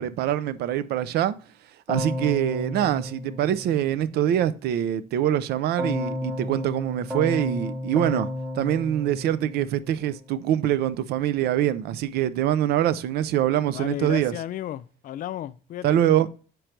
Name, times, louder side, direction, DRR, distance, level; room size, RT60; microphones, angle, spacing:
voice 1, 0.0-1.4 1.9-8.3 8.6-14.3 15.8-16.3, right 11 dB, 70° right, 0.5 m, -24 dB
Keyboard (musical), 1.9-4.2 5.8-10.1, left 1 dB, 10° right, 1.1 m, -33 dB
voice 2, 13.7-16.0, left 12 dB, 55° left, 0.4 m, -34 dB
5.1 x 4.6 x 4.4 m
cardioid pair, 110°, 17 cm